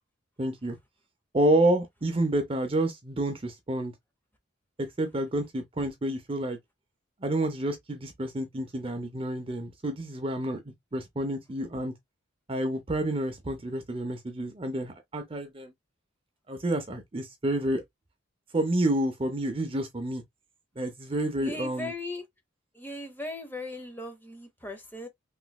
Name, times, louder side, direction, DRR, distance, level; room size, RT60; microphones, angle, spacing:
voice 1, 0.4-0.8 1.3-3.9 4.8-6.6 7.2-11.9 12.5-15.7 16.5-17.8 18.5-20.2 20.8-21.9, right 1 dB, 30° right, 0.6 m, -29 dB
voice 2, 21.4-22.2 22.7-25.1, left 2 dB, 10° left, 0.7 m, -38 dB
3.2 x 3.0 x 2.2 m
head